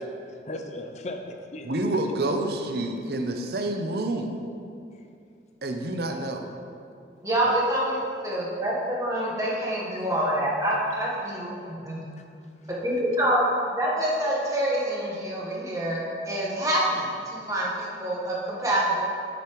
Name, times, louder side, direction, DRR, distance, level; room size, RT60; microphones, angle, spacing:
voice 1, 0.3-1.9 7.4-7.6 9.9-10.0 12.2-12.3 12.6-12.7, left 1 dB, 40° left, 4 dB, 0.5 m, -38 dB
voice 2, 1.6-4.4 5.6-6.5, right 2 dB, 60° right, 4 dB, 0.6 m, -28 dB
voice 3, 7.2-8.0 8.2-12.0 12.8-19.0, right 1 dB, 20° right, -5 dB, 1.2 m, -26 dB
8.1 x 6.7 x 3.1 m, 2.4 s
head